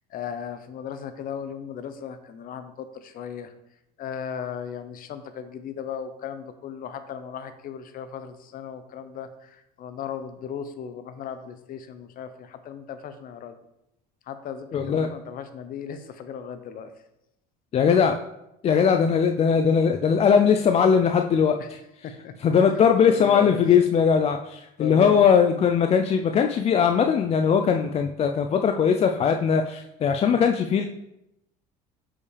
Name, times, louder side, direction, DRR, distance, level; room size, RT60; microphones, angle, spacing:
voice 1, 0.1-3.5 4.0-13.5 14.3-16.9 21.6-21.7 22.0-22.3 23.1-23.6 24.8-25.3, left 8 dB, 50° left, 10 dB, 0.8 m, -36 dB
voice 2, 14.7-15.1 17.7-18.1 18.6-21.6 22.4-30.9, left 7 dB, 30° left, 6 dB, 0.4 m, -20 dB
6.6 x 5.6 x 3.3 m, 0.85 s
supercardioid pair, 95°, 19 cm